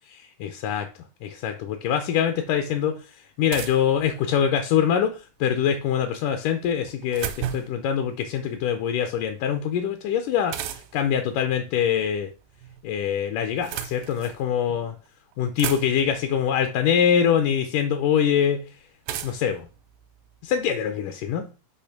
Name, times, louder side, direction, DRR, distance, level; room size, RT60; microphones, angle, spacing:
voice 1, 0.1-0.9 1.2-12.3 12.8-15.0 15.4-18.7 19.2-19.7 20.4-21.5, left 8 dB, 75° left, 2.2 m, -24 dB
sound 1, 2.5-2.6 3.5-4.6 6.6-7.9 10.5-11.1 12.3-12.9 13.4-14.4 15.1-15.2 15.3-16.2 17.4-17.5 19.1-20.6, right 10 dB, 85° right, 2.5 m, -34 dB
8.5 x 3.1 x 5.8 m
omnidirectional pair, 3.9 m